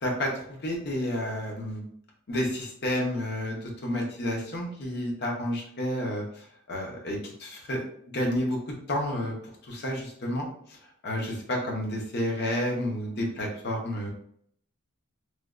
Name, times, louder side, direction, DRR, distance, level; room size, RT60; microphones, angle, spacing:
voice 1, 0.0-1.8 2.3-7.8 8.1-9.3 9.6-10.8 11.0-14.1, left 1 dB, 50° left, 0 dB, 0.6 m, -30 dB
3.1 x 2.2 x 2.3 m, 0.65 s
head